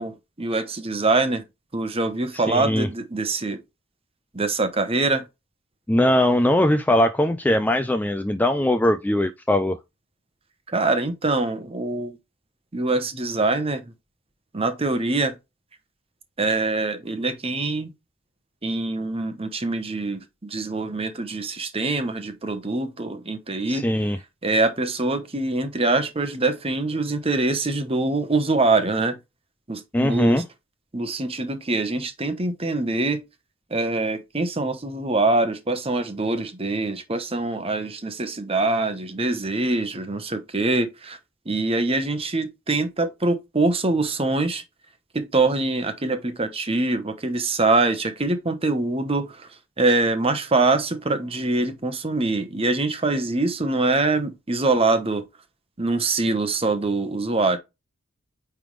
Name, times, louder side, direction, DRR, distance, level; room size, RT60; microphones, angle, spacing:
voice 1, 0.0-1.4 1.7-3.6 4.3-5.3 10.7-12.2 12.7-13.8 14.5-15.3 16.4-17.9 18.6-23.9 24.4-29.2 29.7-30.4 30.9-33.2 33.7-41.2 41.5-44.6 45.1-49.5 49.8-55.2 55.8-57.6, right 2 dB, 25° right, 0.9 m, -24 dB
voice 2, 2.3-2.9 5.9-9.8 23.7-24.2 29.9-30.4, left 1 dB, 10° left, 0.3 m, -21 dB
9.0 x 3.5 x 3.2 m
head